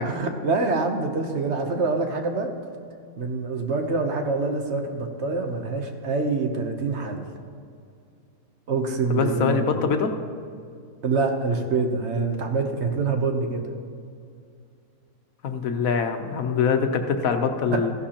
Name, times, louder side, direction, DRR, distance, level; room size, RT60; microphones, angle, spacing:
voice 1, 0.0-2.5 3.2-7.3 8.7-9.6 11.0-13.7 17.7-17.8, right 3 dB, 55° right, 4 dB, 1.2 m, -25 dB
voice 2, 9.1-10.1 15.4-17.9, left 5 dB, 75° left, 5 dB, 1.3 m, -24 dB
15.0 x 11.5 x 2.9 m, 2.3 s
omnidirectional pair, 1.5 m